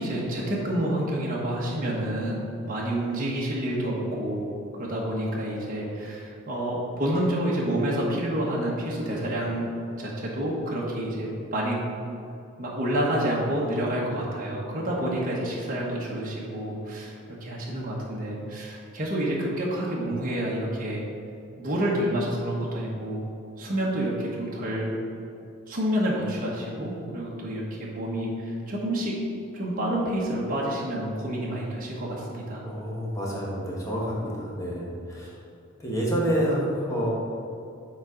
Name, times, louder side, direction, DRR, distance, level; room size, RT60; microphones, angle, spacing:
voice 1, 0.0-9.7 10.0-11.8 12.6-21.0 21.6-23.3 23.6-24.9 25.7-29.1 29.5-32.7, right 1 dB, 40° right, -5 dB, 1.1 m, -28 dB
voice 2, 32.6-35.3 35.8-37.1, equal, 15° left, -6 dB, 1.3 m, -28 dB
7.1 x 4.1 x 5.0 m, 2.5 s
head